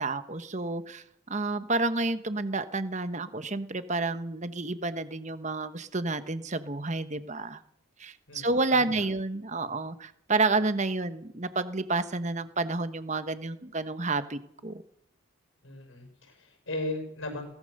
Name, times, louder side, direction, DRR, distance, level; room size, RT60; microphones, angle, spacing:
voice 1, 0.0-7.6 8.0-14.8, right 3 dB, 35° right, 11 dB, 1.2 m, -30 dB
voice 2, 8.3-9.0 15.6-17.5, left 2 dB, 75° left, 5 dB, 6.1 m, -37 dB
22.0 x 18.5 x 6.7 m, 0.71 s
head